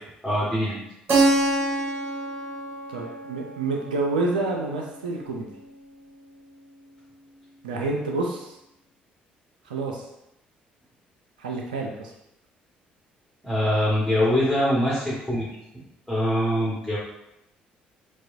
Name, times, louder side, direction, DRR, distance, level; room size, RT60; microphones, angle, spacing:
voice 1, 0.2-0.8 13.4-15.5 16.1-17.0, equal, ahead, -9 dB, 1.4 m, -23 dB
Keyboard (musical), 1.1-5.6, right 2 dB, 55° right, 0.7 m, -27 dB
voice 2, 2.9-5.5 7.6-8.6 9.7-10.0 11.4-12.1, right 3 dB, 90° right, 0 dB, 0.4 m, -28 dB
4.6 x 2.3 x 2.6 m, 0.84 s
hypercardioid pair, 50°, 5 cm